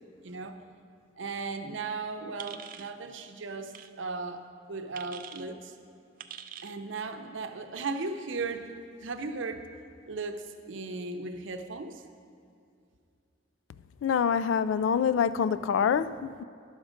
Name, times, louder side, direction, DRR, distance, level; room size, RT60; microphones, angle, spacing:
voice 1, 0.2-0.6 1.2-4.4 4.7-5.7 6.6-8.6 9.0-9.6 10.1-12.0, right 3 dB, 80° right, 0.7 m, -36 dB
sound 1, 2.4-2.9 3.7-3.9 4.9-5.4 6.2-6.8, right 9 dB, 45° right, 0.3 m, -44 dB
voice 2, 14.0-16.4, left 7 dB, 85° left, 0.3 m, -26 dB
11.0 x 6.3 x 5.0 m
head